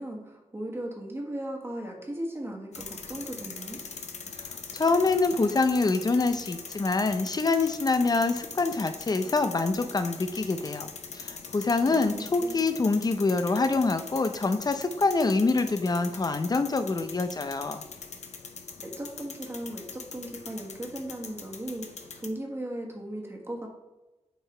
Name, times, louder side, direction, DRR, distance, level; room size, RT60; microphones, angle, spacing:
voice 1, 0.0-3.8 11.8-12.5 18.8-21.9 22.1-23.8, right 1 dB, 20° right, 0 dB, 1.5 m, -37 dB
sound 1, 2.7-22.3, left 5 dB, 70° left, 0.7 m, -42 dB
voice 2, 4.7-10.9 11.1-17.8, left 3 dB, 35° left, 9 dB, 0.6 m, -25 dB
7.9 x 4.7 x 3.3 m, 1.1 s
wide cardioid pair, 95°, 12 cm